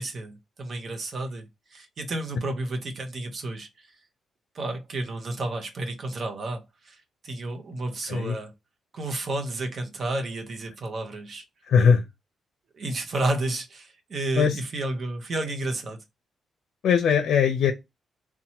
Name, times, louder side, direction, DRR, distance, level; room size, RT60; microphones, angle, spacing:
voice 1, 0.0-4.0 4.5-8.5 8.9-11.5 12.7-16.0, right 2 dB, 50° right, 0.7 m, -31 dB
voice 2, 11.7-12.0 14.4-14.6 16.8-17.7, left 7 dB, 75° left, 0.5 m, -20 dB
2.8 x 2.2 x 2.7 m
cardioid pair, 100°, 0 cm